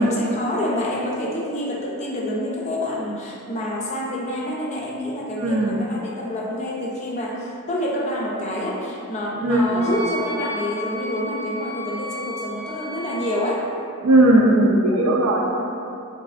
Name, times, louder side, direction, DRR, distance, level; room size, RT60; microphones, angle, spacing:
voice 1, 0.0-13.6 15.4-15.7, left 1 dB, 35° left, -3 dB, 0.4 m, -27 dB
voice 2, 5.4-5.7 9.4-9.8 14.0-15.5, right 1 dB, 70° right, 0 dB, 0.4 m, -17 dB
Wind instrument woodwind instrument, 9.8-13.4, left 1 dB, 80° left, 0.8 m, -33 dB
3.4 x 3.1 x 2.4 m, 2.7 s
head